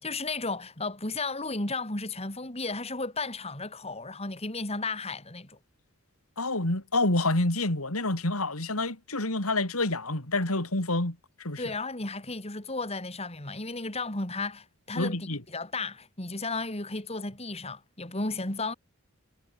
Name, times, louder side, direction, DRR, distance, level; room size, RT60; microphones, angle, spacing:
voice 1, 0.0-5.6 11.6-18.7, left 3 dB, 30° left, 3.4 m, -34 dB
voice 2, 6.4-11.6 15.0-15.4, left 2 dB, 90° left, 4.3 m, -28 dB
head